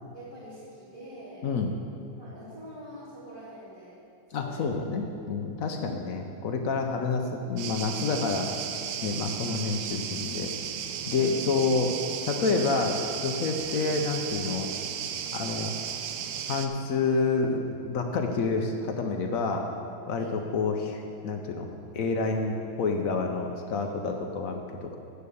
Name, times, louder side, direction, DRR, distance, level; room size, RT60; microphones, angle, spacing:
voice 1, 0.0-1.5 2.2-4.0 4.3-4.7 5.7-6.1 11.2-11.4 15.5-15.7 20.2-20.4, equal, 25° left, -11 dB, 2.5 m, -44 dB
voice 2, 4.3-8.5 9.0-10.5 11.1-12.0 12.3-14.7 15.3-15.7 16.5-19.7 20.1-25.0, left 4 dB, 70° left, 3 dB, 0.8 m, -28 dB
sound 1, 7.6-16.7, right 8 dB, 75° right, 1.1 m, -35 dB
7.7 x 6.6 x 6.9 m, 2.6 s
omnidirectional pair, 2.1 m